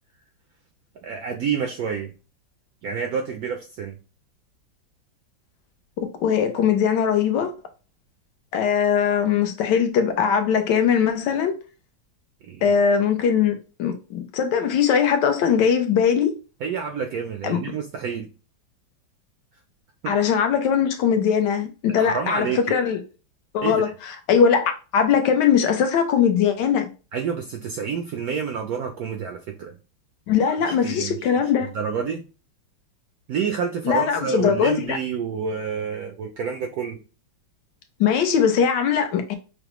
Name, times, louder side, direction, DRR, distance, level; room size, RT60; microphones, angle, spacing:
voice 1, 1.0-2.1 2.8-4.0 12.5-12.8 16.6-18.3 20.0-20.1 22.0-22.6 23.6-23.9 27.1-29.8 30.5-31.2 31.7-32.2 33.3-37.0, right 6 dB, 80° right, 0.8 m, -28 dB
voice 2, 6.0-7.5 8.5-11.6 12.6-16.3 17.4-17.6 20.1-23.0 23.5-23.9 24.3-26.9 30.3-31.7 33.9-35.0 38.0-39.4, left 7 dB, 70° left, 1.1 m, -20 dB
5.8 x 2.1 x 3.0 m
omnidirectional pair, 2.1 m